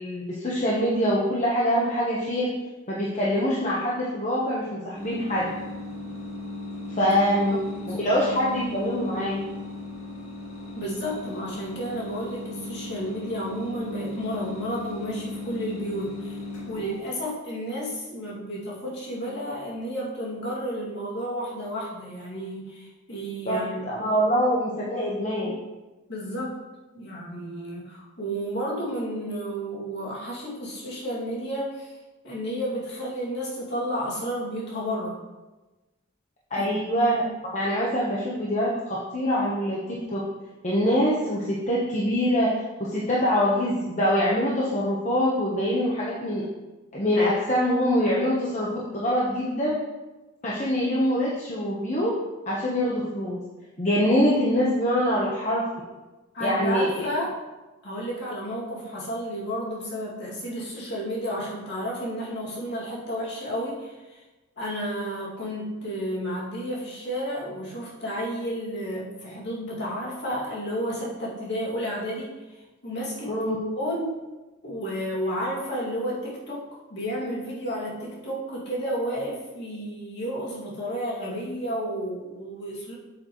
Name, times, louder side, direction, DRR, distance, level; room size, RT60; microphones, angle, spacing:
voice 1, 0.0-2.5 2.9-5.5 7.0-7.6 7.9-9.4 23.4-23.6 23.9-25.5 36.5-37.2 37.5-40.2 40.6-42.5 42.8-46.4 46.9-49.7 50.4-52.1 52.5-53.4 53.8-55.6 56.4-57.1 73.3-73.6, equal, 35° left, -5 dB, 1.1 m, -24 dB
sound 1, 4.9-17.3, left 2 dB, 90° left, 2.1 m, -37 dB
voice 2, 10.7-16.4 16.7-23.8 26.1-26.6 26.9-32.0 32.2-35.2 36.6-36.7 56.3-57.4 57.8-64.2 64.6-73.4 73.8-74.2 74.6-82.9, equal, 50° left, -5 dB, 2.5 m, -32 dB
8.2 x 7.9 x 3.1 m, 1.1 s
head